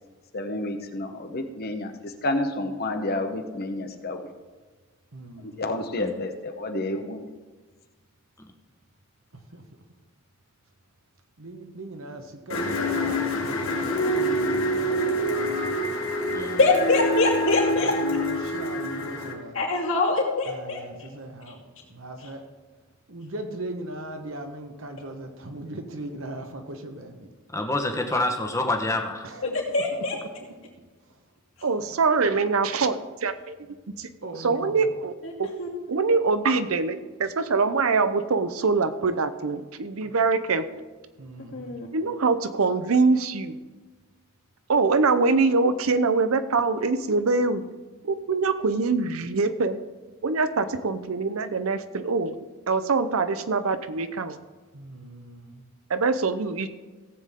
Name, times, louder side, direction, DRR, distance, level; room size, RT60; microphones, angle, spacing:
voice 1, 0.3-4.3 5.4-7.3, left 2 dB, 50° left, 6 dB, 1.0 m, -30 dB
voice 2, 5.1-5.8 9.3-9.6 11.4-15.5 17.7-19.6 20.4-21.6 21.9-22.4 23.1-27.3 29.2-29.6 34.2-34.9 40.0-40.1 41.2-41.8 54.7-55.6, right 1 dB, 70° right, 5 dB, 1.3 m, -39 dB
sound 1, 12.5-19.3, equal, 80° left, 1.7 m, -26 dB
voice 3, 16.6-17.9 19.5-20.8 29.7-30.2 35.2-35.3 35.6-35.7 41.5-41.9, left 3 dB, 65° left, -3 dB, 2.7 m, -23 dB
voice 4, 27.5-29.3, left 2 dB, 15° left, 3 dB, 1.1 m, -27 dB
voice 5, 31.6-33.6 34.0-34.1 34.4-35.1 35.4-35.5 35.9-40.7 41.9-43.5 44.7-47.6 48.0-49.8 50.2-52.4 52.7-54.4 55.9-56.7, right 4 dB, 85° right, 11 dB, 0.7 m, -24 dB
17.0 x 7.5 x 3.7 m, 1.3 s
head